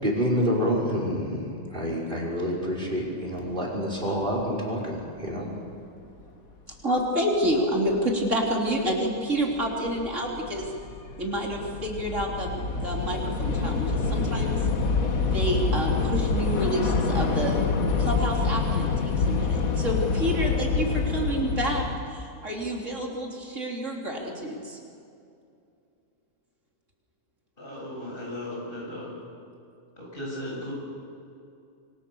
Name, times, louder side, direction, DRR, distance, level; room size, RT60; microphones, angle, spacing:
voice 1, 0.0-5.5, equal, 35° right, -2 dB, 5.7 m, -28 dB
voice 2, 6.8-10.7 11.2-14.6 15.2-17.6 18.0-24.8, equal, 60° right, -1 dB, 3.7 m, -28 dB
Train / Subway metro underground, 8.0-8.1 8.9-9.2 9.4-22.0, left 4 dB, 80° left, 2.0 m, -26 dB
voice 3, 27.6-29.2 30.0-30.7, left 1 dB, 40° left, -3 dB, 8.3 m, -36 dB
26.5 x 24.5 x 7.0 m, 2.5 s
omnidirectional pair, 1.4 m